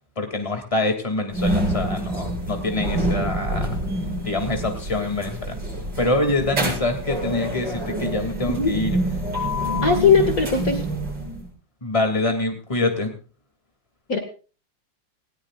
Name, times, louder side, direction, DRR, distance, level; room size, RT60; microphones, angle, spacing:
voice 1, 0.2-3.7 4.2-5.6 6.0-8.9 11.8-13.1, left 2 dB, 15° left, 4 dB, 2.7 m, -25 dB
sound 1, 1.3-11.5, right 1 dB, 65° right, 8.0 m, -27 dB
voice 2, 9.8-10.8 14.1-14.2, left 5 dB, 50° left, 5 dB, 2.5 m, -19 dB
19.0 x 18.5 x 2.5 m, 0.37 s
omnidirectional pair, 2.0 m